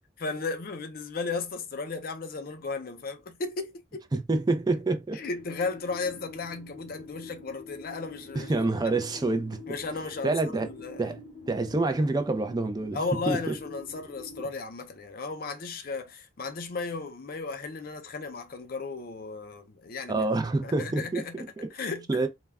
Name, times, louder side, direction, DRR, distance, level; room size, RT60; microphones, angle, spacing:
voice 1, 0.2-4.1 5.1-8.5 8.8-8.9 9.7-11.1 12.9-20.2 20.6-21.5 21.7-22.1, left 4 dB, 55° left, 0.5 m, -35 dB
voice 2, 4.1-5.2 8.4-9.6 10.2-10.7 11.0-11.2 11.5-13.0 13.3-13.6 20.1-21.7 22.1-22.3, right 2 dB, 20° right, 0.4 m, -27 dB
sound 1, 5.3-14.4, left 3 dB, 25° left, 0.8 m, -46 dB
2.2 x 2.2 x 3.4 m
head